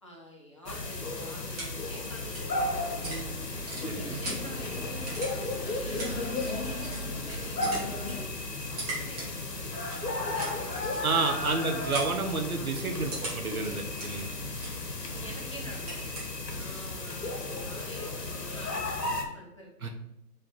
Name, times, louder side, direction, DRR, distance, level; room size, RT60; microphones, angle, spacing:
voice 1, 0.0-3.3 4.0-8.4 8.7-11.6 12.6-14.5 15.0-19.9, equal, 20° left, -3 dB, 0.6 m, -48 dB
sound 1, 0.7-19.2, left 2 dB, 85° left, 1.3 m, -35 dB
sound 2, 1.3-16.8, right 2 dB, 25° right, 1.3 m, -44 dB
sound 3, 3.0-8.2, left 1 dB, 40° left, 1.2 m, -39 dB
voice 2, 3.8-4.2 11.0-14.3 15.2-15.3 19.8-19.9, right 3 dB, 60° right, 4 dB, 1.0 m, -30 dB
4.9 x 3.7 x 5.2 m, 0.85 s
figure-of-eight pair, 150°, 48 cm